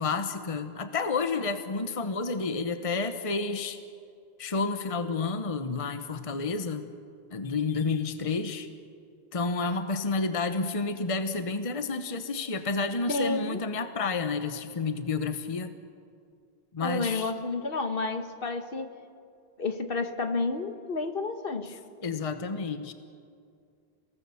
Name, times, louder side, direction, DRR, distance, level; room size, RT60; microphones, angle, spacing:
voice 1, 0.0-3.8 4.4-6.9 7.3-8.7 9.3-15.7 16.7-17.3 22.0-22.9, left 4 dB, 35° left, 9 dB, 1.0 m, -30 dB
voice 2, 13.1-13.6 16.8-19.0 19.6-21.8, left 3 dB, 60° left, 7 dB, 1.5 m, -30 dB
29.0 x 18.5 x 7.1 m, 2.3 s
omnidirectional pair, 1.1 m